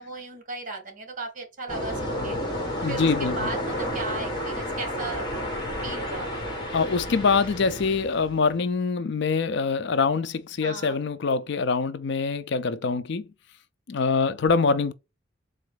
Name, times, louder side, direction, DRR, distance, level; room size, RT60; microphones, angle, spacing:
voice 1, 0.0-2.4 2.9-5.3 5.8-6.5 10.6-11.0, right 3 dB, 45° right, 1.7 m, -36 dB
sound 1, 1.7-8.6, equal, 20° left, 1.6 m, -31 dB
voice 2, 2.8-3.5 6.7-13.3 13.9-14.9, left 4 dB, 60° left, 0.5 m, -24 dB
4.1 x 2.6 x 4.8 m
head